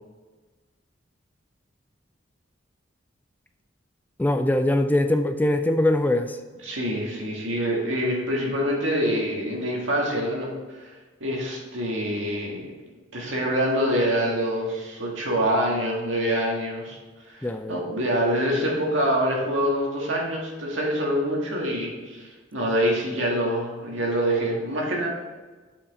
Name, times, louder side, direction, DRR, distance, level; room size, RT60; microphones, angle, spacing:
voice 1, 4.2-6.4 17.4-17.8, left 1 dB, 10° left, 8 dB, 0.3 m, -22 dB
voice 2, 6.6-10.5 10.8-10.9 11.2-12.6 13.1-17.0 17.3-25.1, equal, 85° right, -2 dB, 2.0 m, -25 dB
7.2 x 5.8 x 4.1 m, 1.3 s
head